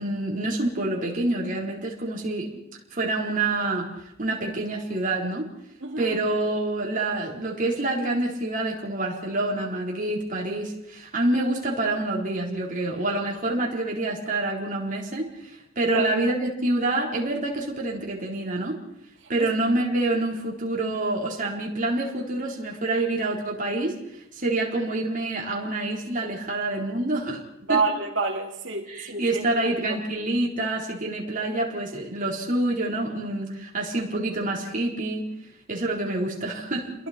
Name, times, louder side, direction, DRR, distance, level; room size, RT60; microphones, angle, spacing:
voice 1, 0.0-2.5 2.9-3.9 4.2-5.5 6.0-18.8 19.3-24.0 24.3-27.4 27.7-27.8 28.9-35.3 35.7-36.9, right 2 dB, 40° right, -2 dB, 4.2 m, -27 dB
voice 2, 5.8-6.2 15.8-16.1 19.4-19.5 22.9-23.0 27.7-30.0, right 3 dB, 65° right, 2 dB, 3.1 m, -28 dB
30.0 x 22.0 x 4.5 m, 0.79 s
head